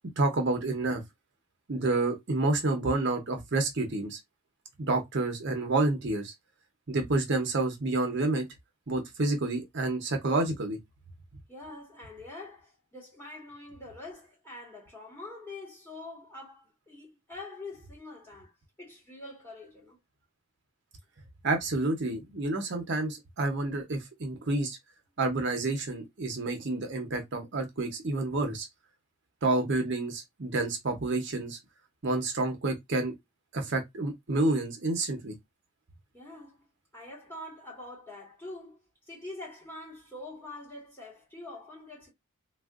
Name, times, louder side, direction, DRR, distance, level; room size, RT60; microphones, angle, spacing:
voice 1, 0.2-1.0 1.7-4.2 4.9-6.3 6.9-8.4 8.9-10.8 21.4-24.8 25.2-28.7 29.4-31.6 32.0-33.1 33.5-35.3, right 2 dB, 50° right, 0.7 m, -29 dB
voice 2, 11.5-18.5 18.8-20.0 36.1-36.6 36.9-38.8 39.1-42.1, left 2 dB, 10° left, 1.3 m, -45 dB
3.4 x 2.3 x 2.4 m
head